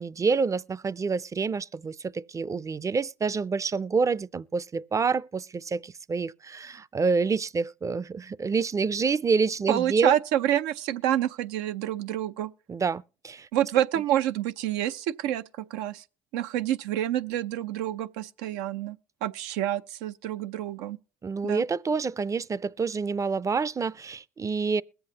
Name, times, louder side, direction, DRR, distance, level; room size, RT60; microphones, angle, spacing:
voice 1, 0.0-10.2 12.7-13.5 21.2-24.8, right 5 dB, 25° right, 0.5 m, -27 dB
voice 2, 9.7-12.5 13.5-16.0 16.3-21.0 21.4-21.6, right 12 dB, 85° right, 0.6 m, -28 dB
21.5 x 7.9 x 2.8 m
hypercardioid pair, 65°, 12 cm